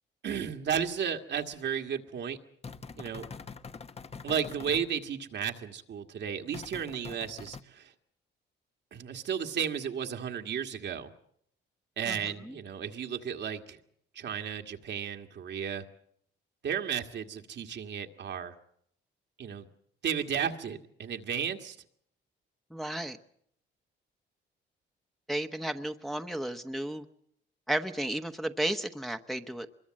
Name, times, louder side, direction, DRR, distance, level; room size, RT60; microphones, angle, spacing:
voice 1, 0.2-2.4 3.0-3.3 4.2-7.9 8.9-11.1 12.0-13.8 14.1-15.8 16.6-18.5 19.4-19.7 20.0-21.8, right 8 dB, 60° right, 5 dB, 1.8 m, -33 dB
sound 1, 2.6-4.9 6.5-7.6, left 5 dB, 30° left, 1.0 m, -44 dB
voice 2, 12.1-12.5 22.7-23.2 25.3-27.0 27.7-29.8, right 1 dB, ahead, 6 dB, 1.0 m, -33 dB
24.0 x 22.0 x 7.6 m, 0.70 s
cardioid pair, 90°, 20 cm